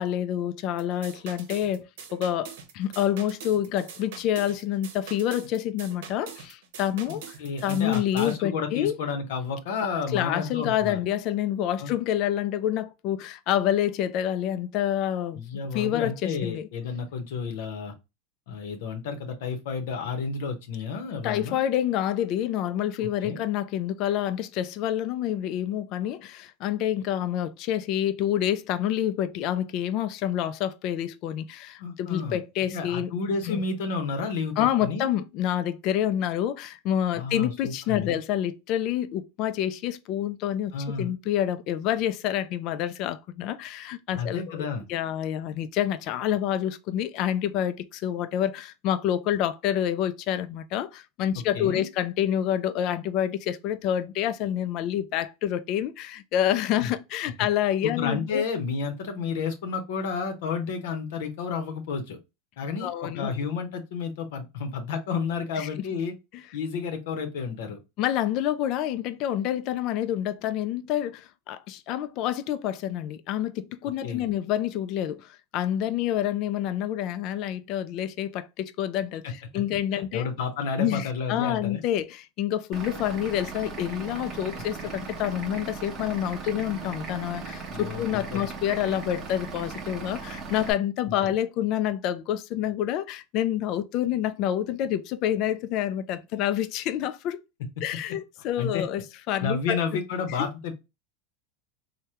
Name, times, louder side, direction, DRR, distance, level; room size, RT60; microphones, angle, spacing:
voice 1, 0.0-7.4 7.6-9.0 10.1-15.4 15.7-16.7 21.2-33.1 33.5-33.6 34.6-58.4 62.8-63.3 65.6-65.9 68.0-80.3 80.8-97.4 97.8-99.8 100.4-100.5, left 11 dB, 50° left, 0.3 m, -28 dB
sound 1, 0.8-8.4, right 7 dB, 75° right, 0.8 m, -44 dB
voice 2, 7.1-11.1 11.8-11.9 15.4-17.9 18.5-21.6 23.0-23.4 31.8-32.4 32.7-35.0 37.1-38.2 40.7-41.1 44.1-44.9 51.3-51.9 56.8-56.9 57.8-62.2 62.6-66.1 66.5-67.8 74.0-74.3 79.2-79.3 79.9-81.8 84.8-84.9 87.7-88.5 91.1-91.3 97.6-97.8 98.6-98.9 99.4-100.7, left 5 dB, 75° left, 0.8 m, -31 dB
Vehicle / Engine, 82.7-90.7, right 4 dB, 30° right, 0.8 m, -38 dB
3.4 x 2.1 x 2.8 m
supercardioid pair, 135°, 0 cm